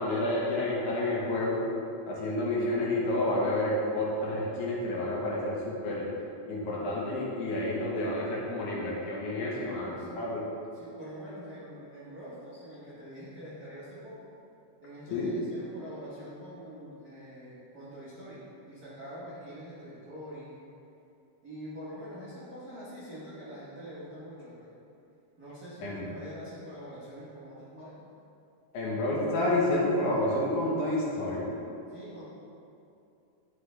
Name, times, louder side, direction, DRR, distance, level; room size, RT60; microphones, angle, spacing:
voice 1, 0.0-1.6 2.1-6.1 6.5-10.4 15.1-15.3 25.8-26.1 28.7-31.5, left 1 dB, 65° left, -4 dB, 2.4 m, -29 dB
voice 2, 9.7-10.2 10.7-14.3 14.8-20.7 21.4-24.7 25.4-28.0 31.9-32.3, equal, 80° right, -11 dB, 0.8 m, -45 dB
10.5 x 5.7 x 3.3 m, 2.7 s
omnidirectional pair, 4.2 m